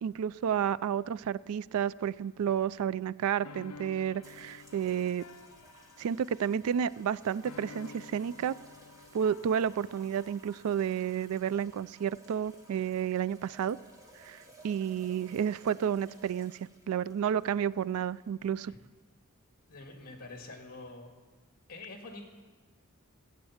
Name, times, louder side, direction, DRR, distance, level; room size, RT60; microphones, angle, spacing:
voice 1, 0.0-5.2 6.0-8.5 9.1-13.8 14.2-14.4 14.6-16.5 16.9-18.7, right 8 dB, 70° right, 19 dB, 0.3 m, -31 dB
sound 1, 3.3-10.4, left 5 dB, 80° left, 0.5 m, -52 dB
sound 2, 4.2-18.5, right 2 dB, 15° right, 1.3 m, -57 dB
voice 2, 19.7-21.1 21.7-22.2, left 2 dB, 40° left, 3 dB, 1.8 m, -46 dB
16.0 x 8.2 x 7.1 m, 1.4 s
head